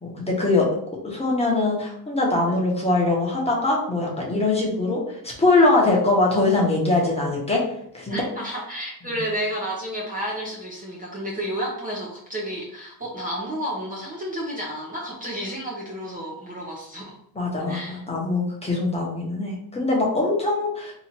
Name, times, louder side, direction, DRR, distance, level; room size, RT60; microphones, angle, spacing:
voice 1, 0.0-0.7 1.0-7.6 7.9-8.3 9.1-9.2 17.3-20.9, left 2 dB, 15° left, -3 dB, 0.9 m, -22 dB
voice 2, 8.1-17.2 17.7-18.0, equal, 20° right, -4 dB, 0.6 m, -31 dB
3.0 x 2.5 x 4.2 m, 0.70 s
cardioid pair, 150°, 42 cm